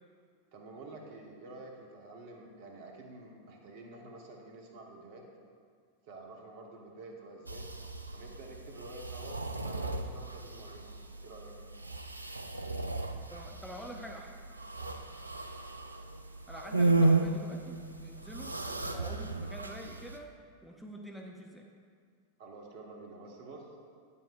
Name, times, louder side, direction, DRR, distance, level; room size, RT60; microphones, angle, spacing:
voice 1, 0.5-5.2 6.0-7.7 8.1-10.9 11.2-11.5 14.8-14.9 22.4-23.7, right 2 dB, 50° right, 1 dB, 1.2 m, -49 dB
sound 1, 7.5-20.2, right 3 dB, 85° right, 0.4 m, -34 dB
voice 2, 13.3-14.3 16.5-18.5 18.9-20.3 20.6-21.7, equal, ahead, 0 dB, 0.5 m, -46 dB
9.0 x 8.4 x 2.4 m, 2.1 s
figure-of-eight pair, 90°, 0 cm